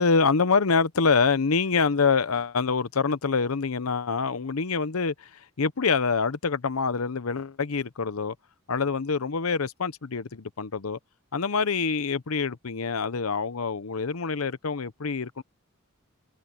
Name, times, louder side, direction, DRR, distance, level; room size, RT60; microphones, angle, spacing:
voice 1, 0.0-8.3 8.7-11.0 11.3-15.4, left 5 dB, 85° left, 0.8 m, -26 dB
head